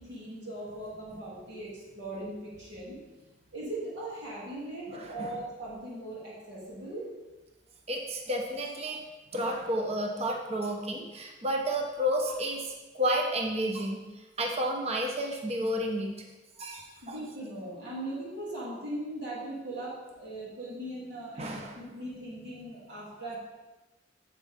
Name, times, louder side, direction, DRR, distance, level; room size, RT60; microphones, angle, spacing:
voice 1, 0.0-3.0 3.5-7.0 17.0-23.4, right 1 dB, 70° right, -7 dB, 2.8 m, -39 dB
voice 2, 4.9-5.4 7.9-9.0 9.3-14.0 14.4-16.1 16.6-17.2 21.4-21.8, equal, 35° right, 1 dB, 0.9 m, -31 dB
9.8 x 7.5 x 3.6 m, 1.1 s
head